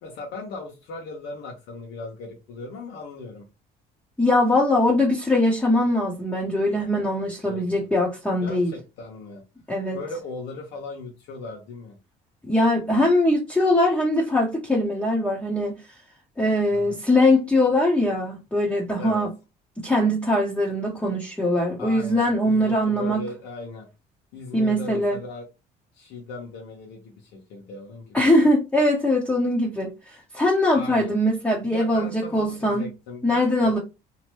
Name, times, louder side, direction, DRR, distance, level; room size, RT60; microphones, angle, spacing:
voice 1, 0.0-3.5 7.4-7.9 8.4-9.4 9.9-12.0 16.7-17.0 19.0-19.3 21.8-23.9 24.3-25.4 25.9-28.2 30.7-31.1 31.7-33.8, left 3 dB, 85° left, 1.0 m, -38 dB
voice 2, 4.2-8.7 9.7-10.0 12.5-15.7 16.4-19.3 19.8-23.2 24.5-25.2 28.1-32.9 33.2-33.8, left 1 dB, 5° left, 0.8 m, -21 dB
2.9 x 2.1 x 3.0 m
cardioid pair, 110°, 17 cm